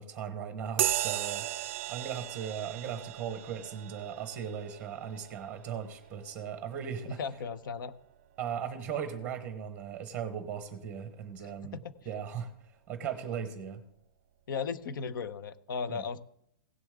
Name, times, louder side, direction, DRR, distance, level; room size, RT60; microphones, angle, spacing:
voice 1, 0.0-1.5 1.9-7.2 8.4-11.8 12.0-12.5 12.9-13.8 15.9-16.0, right 8 dB, 10° right, 8 dB, 1.0 m, -38 dB
sound 1, 0.8-8.7, right 13 dB, 40° right, 0.4 m, -37 dB
voice 2, 7.1-7.9 11.4-11.9 14.5-16.2, left 5 dB, 65° left, 15 dB, 0.8 m, -36 dB
16.5 x 7.0 x 3.6 m, 0.73 s
hypercardioid pair, 170°, 12 cm